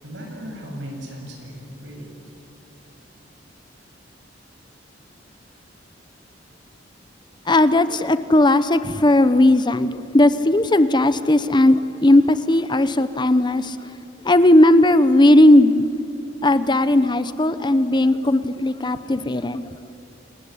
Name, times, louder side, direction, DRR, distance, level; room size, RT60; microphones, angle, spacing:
voice 1, 0.0-2.3, equal, 80° right, 1 dB, 7.9 m, -37 dB
voice 2, 7.5-13.8 14.2-15.9 16.4-19.6, left 1 dB, 25° left, 13 dB, 0.9 m, -16 dB
27.5 x 20.5 x 9.9 m, 2.8 s
head